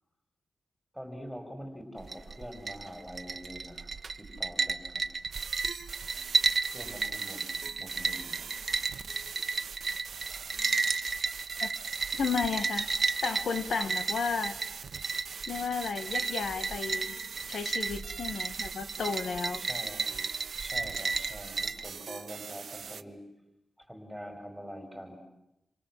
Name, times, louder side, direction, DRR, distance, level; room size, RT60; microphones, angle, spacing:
voice 1, 0.9-3.9 4.2-5.0 6.7-8.5 19.6-20.0 20.6-23.2 23.8-25.2, equal, 5° left, 5 dB, 5.3 m, -44 dB
sound 1, 2.0-21.9, right 4 dB, 50° right, 1.1 m, -33 dB
sound 2, 5.3-23.0, right 6 dB, 80° right, 1.1 m, -43 dB
voice 2, 12.2-12.9 13.2-14.5 15.5-17.1 17.5-19.6, left 5 dB, 85° left, 11 dB, 1.7 m, -33 dB
28.0 x 27.0 x 7.7 m, 0.87 s
wide cardioid pair, 105°, 0 cm